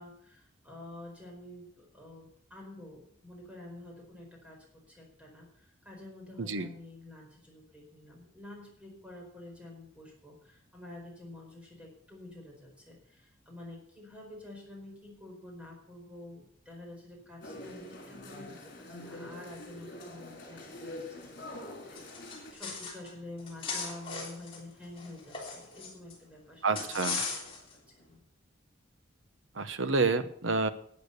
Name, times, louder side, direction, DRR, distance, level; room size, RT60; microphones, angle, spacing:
voice 1, 0.0-27.2 28.0-28.2, left 2 dB, 5° right, -1 dB, 4.6 m, -49 dB
sound 1, 17.4-22.5, left 1 dB, 55° left, 3.7 m, -45 dB
sound 2, 22.0-23.1 23.4-26.1 26.8-27.7, left 4 dB, 25° left, 3.5 m, -38 dB
voice 2, 26.6-27.2 29.5-30.7, right 4 dB, 75° right, 11 dB, 1.0 m, -28 dB
12.0 x 9.0 x 6.7 m, 0.63 s
head